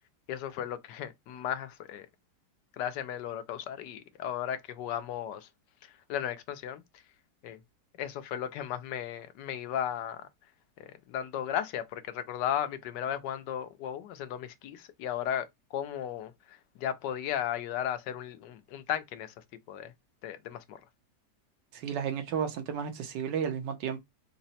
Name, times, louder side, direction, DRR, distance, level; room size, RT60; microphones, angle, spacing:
voice 1, 0.3-2.1 2.7-5.5 5.8-6.8 7.4-7.6 8.0-10.3 10.8-19.3 19.7-19.9 20.2-20.8, left 10 dB, 80° left, 1.2 m, -35 dB
voice 2, 21.7-24.0, right 7 dB, 85° right, 1.5 m, -33 dB
3.9 x 2.1 x 4.0 m
omnidirectional pair, 1.9 m